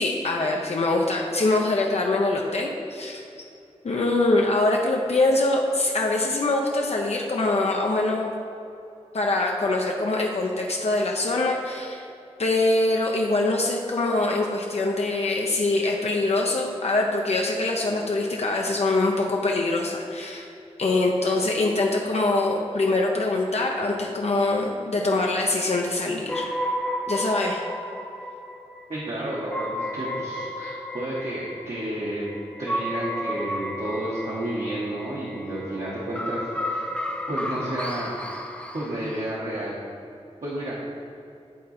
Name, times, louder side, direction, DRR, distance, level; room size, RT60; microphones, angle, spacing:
voice 1, 0.0-3.2 3.8-8.3 9.1-12.0 12.4-20.5 20.8-26.5 27.1-27.6, left 2 dB, 65° left, 0 dB, 0.6 m, -24 dB
sound 1, 26.3-39.3, equal, 10° left, 0.6 m, -32 dB
voice 2, 28.9-32.3 32.6-36.9 37.3-38.1 38.7-39.8 40.4-40.8, right 1 dB, 65° right, -6 dB, 1.2 m, -31 dB
10.0 x 3.7 x 4.3 m, 2.7 s
wide cardioid pair, 75°, 12 cm